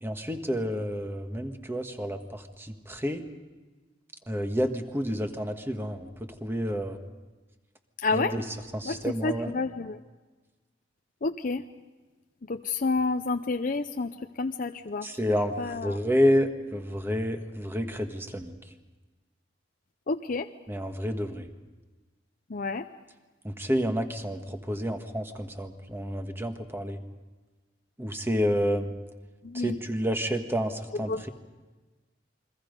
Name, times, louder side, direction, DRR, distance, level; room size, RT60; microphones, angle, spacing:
voice 1, 0.0-3.2 4.3-7.0 8.1-8.4 8.7-9.5 15.0-18.5 20.7-21.5 23.4-27.0 28.0-28.9 29.5-31.3, equal, 15° right, 6 dB, 1.5 m, -29 dB
voice 2, 8.0-8.3 8.8-10.0 11.2-11.7 12.4-15.1 15.6-16.0 20.1-20.5 22.5-22.9 29.4-29.8 30.9-31.3, left 3 dB, 50° left, 6 dB, 0.6 m, -30 dB
29.0 x 22.5 x 5.3 m, 1.3 s
head